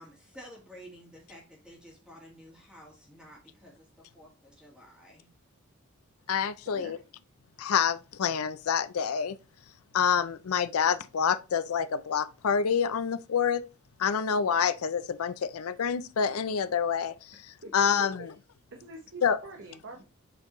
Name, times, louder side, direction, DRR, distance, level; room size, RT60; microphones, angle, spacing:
voice 1, 0.0-5.3, equal, 5° right, 1.8 m, -51 dB
voice 2, 6.3-7.0 7.6-9.4 9.9-13.6 14.0-17.3 17.7-18.3 19.2-19.4, left 7 dB, 85° left, 0.5 m, -27 dB
voice 3, 18.0-18.3 18.7-20.1, right 2 dB, 60° right, 1.0 m, -45 dB
7.4 x 4.4 x 3.0 m
head